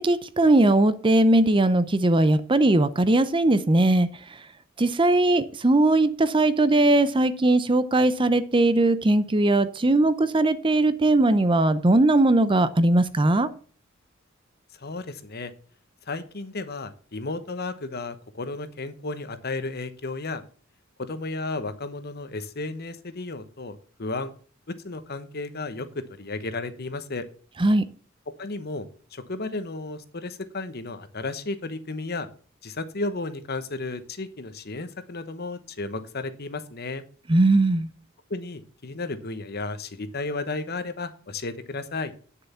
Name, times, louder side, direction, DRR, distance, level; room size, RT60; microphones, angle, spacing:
voice 1, 0.0-4.1 4.8-13.5 27.6-27.8 37.3-37.9, right 2 dB, 25° right, 14 dB, 0.6 m, -20 dB
voice 2, 14.8-15.5 16.1-20.4 21.0-24.3 24.8-27.2 28.4-32.3 32.6-37.0 38.3-42.1, left 3 dB, 50° left, 12 dB, 1.1 m, -33 dB
9.6 x 6.8 x 5.7 m, 0.41 s
head